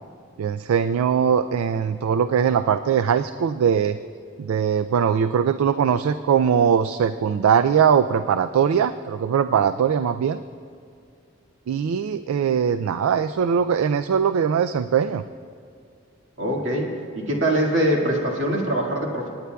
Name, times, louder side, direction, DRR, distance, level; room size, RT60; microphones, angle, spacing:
voice 1, 0.4-4.0 4.4-10.4 11.7-15.2, right 7 dB, 90° right, 12 dB, 0.3 m, -21 dB
voice 2, 16.4-19.3, right 1 dB, 60° right, -1 dB, 1.8 m, -23 dB
28.5 x 9.6 x 2.3 m, 2.3 s
head